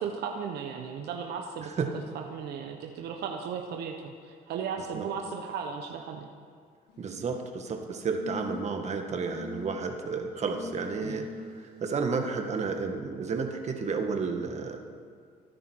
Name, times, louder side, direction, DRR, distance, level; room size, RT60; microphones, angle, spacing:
voice 1, 0.0-1.7 2.1-6.3 11.0-11.2, right 6 dB, 75° right, 3 dB, 1.1 m, -36 dB
sound 1, 6.9-7.5 8.2-8.8 9.3-9.7 10.4-12.0 13.3-13.4, left 5 dB, 75° left, 2.3 m, -43 dB
voice 2, 7.0-11.3 11.5-14.8, right 5 dB, 40° right, 4 dB, 1.8 m, -31 dB
25.0 x 10.0 x 4.7 m, 2.1 s
cardioid pair, 110°, 17 cm